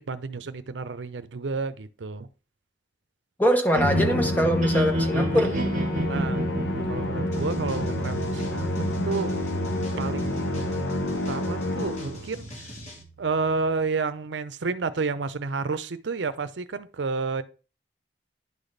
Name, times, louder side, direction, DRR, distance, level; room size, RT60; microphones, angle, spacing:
voice 1, 0.1-2.3 6.1-6.5 6.9-8.7 9.0-9.3 10.0-12.5 13.2-17.4, right 4 dB, 85° right, 0.6 m, -30 dB
voice 2, 3.4-5.5, equal, 10° left, 0.9 m, -23 dB
sound 1, 3.7-13.8, right 1 dB, 45° right, 1.0 m, -31 dB
Musical instrument, 3.8-12.3, left 1 dB, 75° left, 0.9 m, -29 dB
sound 2, 7.3-13.0, left 1 dB, 40° left, 1.8 m, -46 dB
10.5 x 4.1 x 3.3 m
head